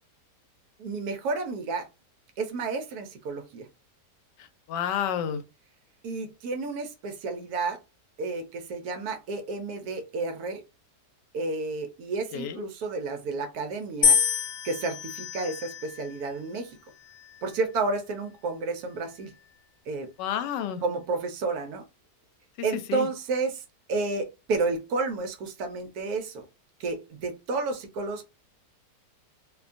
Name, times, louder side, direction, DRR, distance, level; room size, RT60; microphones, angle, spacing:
voice 1, 0.8-1.9 2.4-3.7 6.0-7.8 8.2-10.6 11.3-14.2 14.6-16.8 17.4-19.3 19.9-20.1 20.8-21.8 22.6-23.6 23.9-26.4 26.8-28.2, right 3 dB, 70° right, 1.0 m, -31 dB
voice 2, 4.7-5.4 12.3-12.7 20.2-20.8 22.6-23.1, left 9 dB, 85° left, 1.2 m, -30 dB
sound 1, 14.0-16.2 17.0-17.6, left 7 dB, 70° left, 1.2 m, -27 dB
2.8 x 2.2 x 2.5 m
omnidirectional pair, 1.8 m